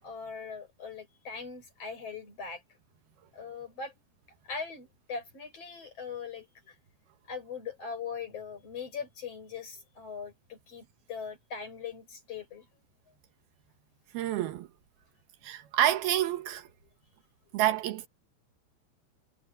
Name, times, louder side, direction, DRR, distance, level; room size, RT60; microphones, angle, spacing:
voice 1, 0.0-2.6 3.3-3.9 4.4-6.8 7.3-12.7, left 5 dB, 35° left, 7.4 m, -40 dB
voice 2, 14.1-14.7 15.4-16.7 17.5-18.1, right 13 dB, 70° right, 3.3 m, -28 dB
omnidirectional pair, 4.8 m